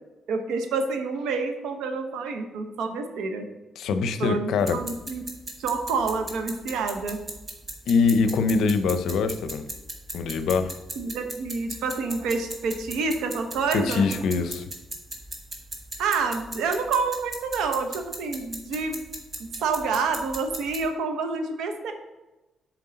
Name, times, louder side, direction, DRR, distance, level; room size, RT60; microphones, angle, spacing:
voice 1, 0.3-3.4 4.2-5.2 5.6-7.2 11.0-14.0 16.0-19.0 19.6-21.9, right 4 dB, 85° right, 6 dB, 0.9 m, -28 dB
voice 2, 3.8-4.8 7.9-9.7 10.1-10.7 13.7-14.6, left 4 dB, 75° left, 10 dB, 0.6 m, -23 dB
sound 1, 4.6-20.9, right 1 dB, 25° right, 1.4 m, -39 dB
7.6 x 4.5 x 4.0 m, 1.1 s
cardioid pair, 90°, 0 cm